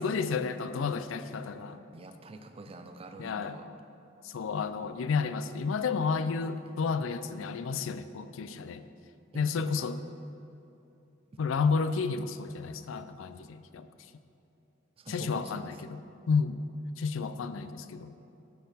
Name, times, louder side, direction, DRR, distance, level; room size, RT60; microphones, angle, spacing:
voice 1, 0.0-1.8 3.2-3.6 4.2-8.9 9.3-10.0 11.4-13.9 15.1-16.0 16.3-16.6 17.0-18.1, left 5 dB, 80° left, 12 dB, 0.4 m, -31 dB
voice 2, 1.9-3.7 6.0-6.7 9.3-9.9 15.0-15.8, right 2 dB, 30° right, 6 dB, 0.4 m, -46 dB
13.0 x 4.4 x 4.0 m, 2.9 s
head